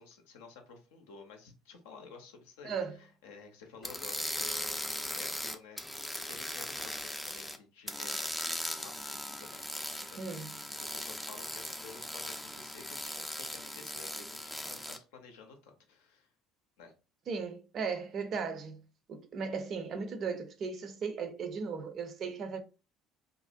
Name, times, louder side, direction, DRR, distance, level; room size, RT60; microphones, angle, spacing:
voice 1, 0.0-4.8 5.1-5.8 6.3-16.3 16.8-16.9, left 5 dB, 65° left, 0.6 m, -52 dB
voice 2, 2.6-2.9 10.2-10.5 17.3-18.8 19.1-22.6, right 5 dB, 45° right, 0.5 m, -36 dB
sound 1, 3.8-7.6 7.9-15.0, left 1 dB, 5° left, 0.4 m, -39 dB
2.5 x 2.0 x 2.5 m
figure-of-eight pair, 60°, 0 cm